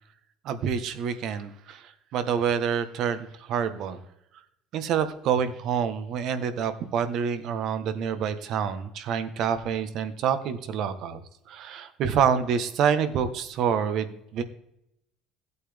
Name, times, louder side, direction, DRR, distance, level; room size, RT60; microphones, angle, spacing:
voice 1, 0.4-4.0 4.7-11.2 11.5-14.4, right 7 dB, 55° right, 10 dB, 1.2 m, -27 dB
16.0 x 8.4 x 3.5 m, 0.80 s
cardioid pair, 145°, 0 cm